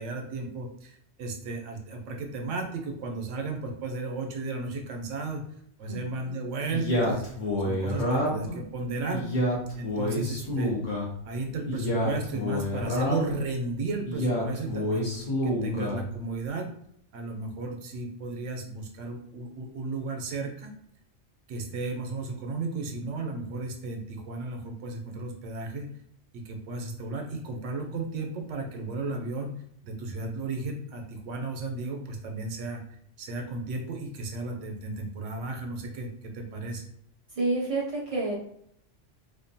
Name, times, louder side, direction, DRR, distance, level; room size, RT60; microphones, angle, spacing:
voice 1, 0.0-5.4 5.8-7.2 7.6-9.2 9.7-10.7 11.3-15.1 15.4-16.7 17.1-20.7 21.5-25.9 26.3-32.8 33.2-36.8, right 3 dB, 90° right, 3 dB, 0.9 m, -34 dB
voice 2, 5.8-6.4 37.3-38.4, right 2 dB, 60° right, -3 dB, 0.3 m, -29 dB
Male speech man speaking, 6.7-8.5 9.1-11.1 11.7-13.4 14.1-16.0, left 1 dB, 45° left, 0.7 m, -28 dB
2.5 x 2.1 x 2.6 m, 0.69 s
omnidirectional pair, 1.2 m